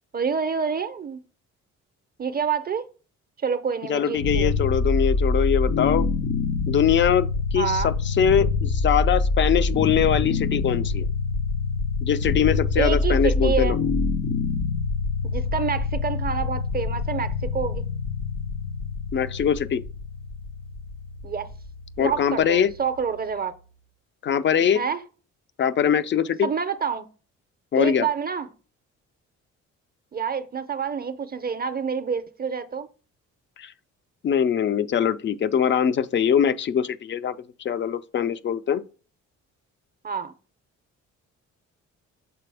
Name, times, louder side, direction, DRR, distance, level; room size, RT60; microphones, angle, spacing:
voice 1, 0.1-1.2 2.2-2.9 3.4-4.5 7.6-7.9 12.8-13.7 15.3-17.8 21.2-21.5 22.0-23.5 24.7-25.0 26.4-27.1 27.8-28.5 30.1-32.9 40.0-40.3, right 6 dB, 30° right, 0.5 m, -27 dB
voice 2, 3.9-6.1 6.7-11.1 12.0-13.8 19.1-19.8 22.0-22.7 24.2-24.8 25.6-26.5 27.7-28.1 33.6-33.7 34.2-38.8, left 8 dB, 40° left, 0.4 m, -22 dB
sound 1, 4.2-23.2, left 4 dB, 85° left, 0.8 m, -26 dB
6.8 x 4.1 x 3.4 m
cardioid pair, 90°, 30 cm